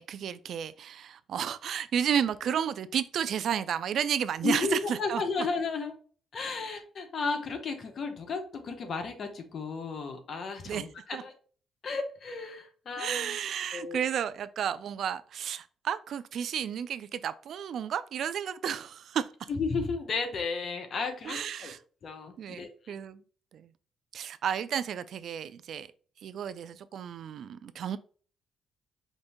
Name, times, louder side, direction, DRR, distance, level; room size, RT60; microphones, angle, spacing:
voice 1, 0.0-5.2 10.7-10.8 11.1-11.2 13.0-19.5 21.2-21.8 22.4-23.2 23.5-23.7 24.1-25.9 26.2-28.0, right 8 dB, 65° right, 0.3 m, -32 dB
voice 2, 4.4-6.0 6.3-11.3 11.8-13.4 13.7-14.1 19.5-21.7 22.0-23.0, left 4 dB, 55° left, 0.9 m, -34 dB
5.1 x 2.6 x 3.6 m
cardioid pair, 90°, 0 cm